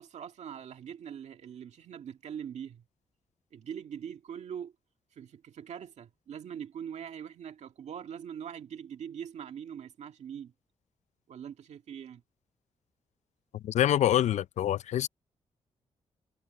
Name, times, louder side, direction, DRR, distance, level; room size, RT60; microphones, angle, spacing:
voice 1, 0.0-2.8 3.5-4.7 5.1-10.5 11.3-12.2, right 8 dB, 80° right, 1.9 m, -42 dB
voice 2, 13.5-15.1, left 11 dB, 85° left, 0.5 m, -26 dB
wide cardioid pair, 130°, 12 cm